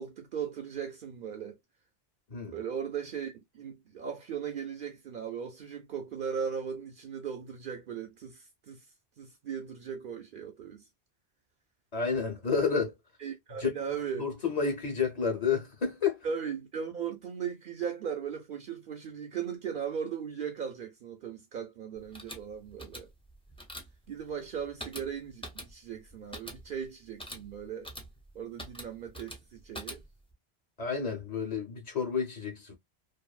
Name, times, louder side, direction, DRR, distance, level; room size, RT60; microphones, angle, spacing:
voice 1, 0.0-1.6 2.5-8.8 9.2-10.8 12.6-12.8 13.2-14.3 16.2-23.1 24.1-27.9 28.3-30.0, right 7 dB, 60° right, 0.7 m, -38 dB
voice 2, 11.9-12.9 13.6-13.9 14.2-16.3 30.8-32.8, left 5 dB, 40° left, 1.0 m, -30 dB
sound 1, 22.0-30.3, equal, 5° left, 0.5 m, -46 dB
2.6 x 2.6 x 2.3 m
omnidirectional pair, 1.1 m